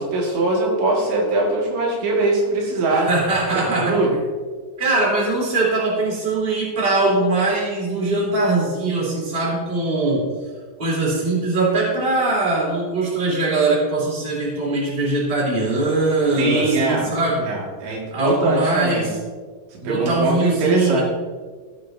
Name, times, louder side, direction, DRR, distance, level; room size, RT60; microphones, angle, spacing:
voice 1, 0.0-3.1 3.5-4.1 16.4-17.1 17.4-19.1 19.7-21.0, right 2 dB, 85° right, -3 dB, 4.3 m, -21 dB
voice 2, 2.8-4.0 4.8-10.2 10.8-17.5 18.1-19.1 19.8-21.0, right 2 dB, 15° right, -5 dB, 2.9 m, -21 dB
15.0 x 9.8 x 2.7 m, 1.5 s
omnidirectional pair, 5.0 m